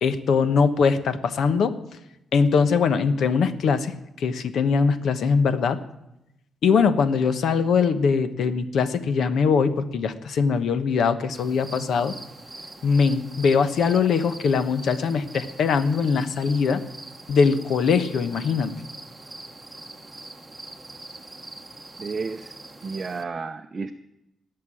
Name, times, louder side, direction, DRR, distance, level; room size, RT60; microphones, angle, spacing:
voice 1, 0.0-1.8 2.3-3.9 4.2-5.8 6.6-12.2 12.8-16.8 17.3-18.7, left 5 dB, 65° left, 12 dB, 1.1 m, -21 dB
sound 1, 11.3-23.2, right 2 dB, 10° right, 1.1 m, -43 dB
voice 2, 22.0-22.6 22.8-23.9, right 4 dB, 30° right, 5 dB, 0.6 m, -32 dB
18.5 x 6.8 x 10.0 m, 0.87 s
cardioid pair, 150°, 0 cm